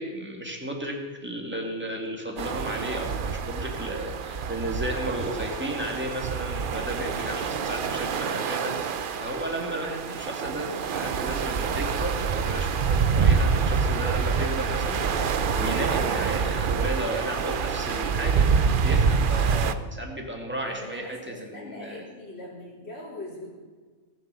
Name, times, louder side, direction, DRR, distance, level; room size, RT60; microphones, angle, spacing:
voice 1, 0.0-22.0, right 1 dB, 10° right, 0 dB, 2.4 m, -34 dB
sound 1, 2.4-19.7, right 6 dB, 50° right, 0.8 m, -26 dB
voice 2, 20.6-23.5, left 1 dB, 60° left, -8 dB, 3.9 m, -41 dB
19.0 x 7.2 x 6.9 m, 1.4 s
omnidirectional pair, 1.2 m